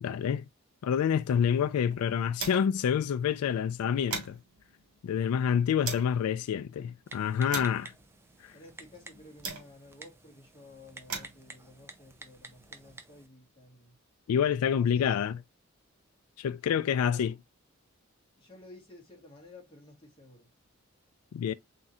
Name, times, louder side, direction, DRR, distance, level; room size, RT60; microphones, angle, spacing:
voice 1, 0.0-0.4 0.8-4.4 5.0-7.9 8.4-8.5 14.3-15.4 16.4-17.3 21.3-21.5, left 8 dB, 85° left, 0.3 m, -27 dB
sound 1, 1.1-2.9 3.2-3.3 3.7-6.2 6.8-10.0 10.7-12.9, right 4 dB, 85° right, 1.9 m, -43 dB
Typing, 7.1-13.3, right 3 dB, 10° right, 0.4 m, -51 dB
voice 2, 8.5-14.0 14.7-15.4 17.0-17.4 18.4-20.5, left 1 dB, 25° left, 1.7 m, -53 dB
4.3 x 3.6 x 2.6 m
head